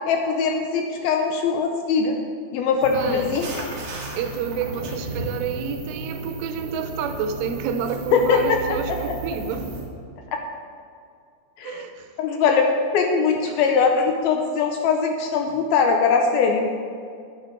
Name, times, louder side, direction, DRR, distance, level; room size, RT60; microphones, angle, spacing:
voice 1, 0.1-2.2 2.5-3.6 8.1-8.6 10.3-10.4 11.6-11.8 12.2-16.7, left 5 dB, 80° left, 3 dB, 2.3 m, -21 dB
sound 1, 2.8-9.8, right 3 dB, 55° right, 2.9 m, -34 dB
voice 2, 2.9-3.4 4.2-9.7 11.6-12.1 13.5-13.6, right 7 dB, 85° right, 8 dB, 2.8 m, -29 dB
10.5 x 9.7 x 4.5 m, 2.3 s
omnidirectional pair, 4.8 m